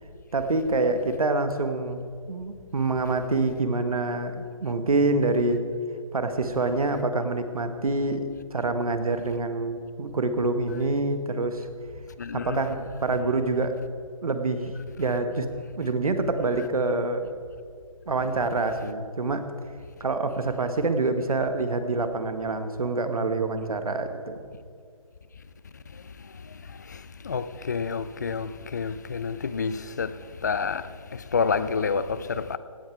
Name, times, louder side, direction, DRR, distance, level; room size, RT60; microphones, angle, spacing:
voice 1, 0.3-5.6 6.1-11.6 12.3-13.7 14.2-15.5 15.8-17.3 18.1-19.5 20.0-24.4, right 3 dB, 85° right, 1.5 m, -26 dB
voice 2, 12.2-12.6 26.9-27.0 27.2-30.1 30.4-30.9 31.3-32.6, left 5 dB, 30° left, 0.3 m, -28 dB
16.5 x 9.2 x 4.6 m
hypercardioid pair, 165°, 18 cm